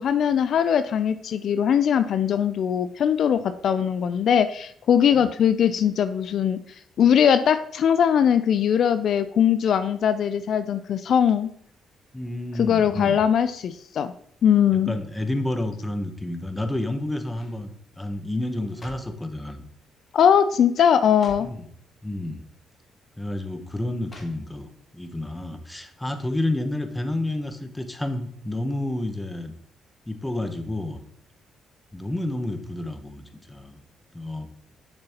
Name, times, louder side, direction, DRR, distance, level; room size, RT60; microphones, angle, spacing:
voice 1, 0.0-6.6 7.0-11.5 12.6-14.1 14.4-15.0 20.1-21.5, left 8 dB, 65° left, 12 dB, 0.3 m, -20 dB
voice 2, 12.1-13.2 14.7-19.6 21.4-21.6 22.0-22.4 23.2-29.5 30.1-31.0 31.9-33.8 34.1-34.5, left 1 dB, 10° left, 8 dB, 0.9 m, -30 dB
sound 1, 16.5-16.9 17.3-17.6 18.4-19.2 20.0-20.3 20.6-20.7 21.0-21.6 22.6-22.7 24.0-24.8 25.2-25.3, left 2 dB, 30° left, 1.7 m, -48 dB
6.9 x 6.6 x 2.9 m, 0.64 s
cardioid pair, 90°, 0 cm